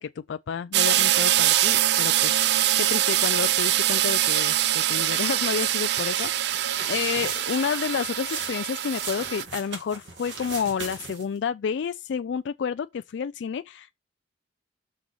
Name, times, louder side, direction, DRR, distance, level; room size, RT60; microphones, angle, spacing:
voice 1, 0.0-6.6 6.9-13.9, left 7 dB, 70° left, 0.3 m, -30 dB
sound 1, 0.7-9.4, right 13 dB, 60° right, 0.4 m, -23 dB
sound 2, 6.4-11.4, right 4 dB, 75° right, 2.7 m, -38 dB
7.7 x 6.1 x 3.4 m
head